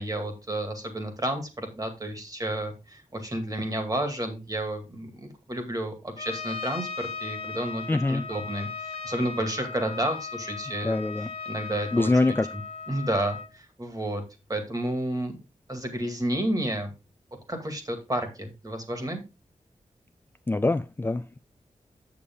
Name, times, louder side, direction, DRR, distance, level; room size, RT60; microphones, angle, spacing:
voice 1, 0.0-11.0 11.5-12.3 12.9-14.2 14.5-15.4 15.7-16.9 17.5-19.2, right 1 dB, 25° right, 2.2 m, -31 dB
Trumpet, 6.2-13.5, left 5 dB, 45° left, 1.5 m, -37 dB
voice 2, 7.9-8.2 10.8-11.3 11.9-12.5 20.5-21.4, left 2 dB, 15° left, 0.4 m, -24 dB
8.3 x 7.0 x 3.6 m
wide cardioid pair, 110°, 14 cm